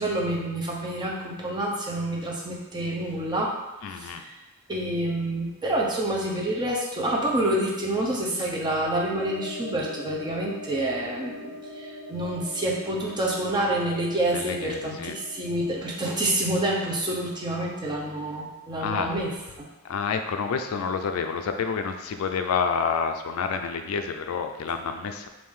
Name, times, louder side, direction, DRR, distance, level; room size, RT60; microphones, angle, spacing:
voice 1, 0.0-3.6 3.9-4.4 4.7-19.7, right 1 dB, 20° right, -3 dB, 0.7 m, -28 dB
voice 2, 3.8-4.2 14.3-15.2 18.8-19.2 19.8-25.3, left 6 dB, 65° left, 6 dB, 0.3 m, -28 dB
sound 1, 9.1-18.6, equal, 25° left, 0.9 m, -42 dB
4.8 x 2.6 x 3.6 m, 1.0 s
head